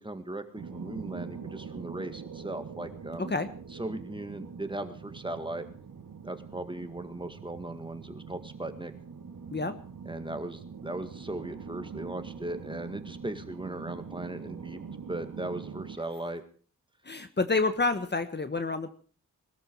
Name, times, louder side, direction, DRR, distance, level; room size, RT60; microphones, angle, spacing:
voice 1, 0.0-3.3 3.7-5.7 6.2-8.9 10.1-14.8 15.1-16.4, right 1 dB, 15° right, 8 dB, 1.9 m, -38 dB
sound 1, 0.5-16.0, right 6 dB, 75° right, 2.3 m, -43 dB
voice 2, 17.0-18.9, left 3 dB, 30° left, 10 dB, 1.3 m, -28 dB
21.5 x 13.0 x 4.7 m, 0.41 s
wide cardioid pair, 85°, 33 cm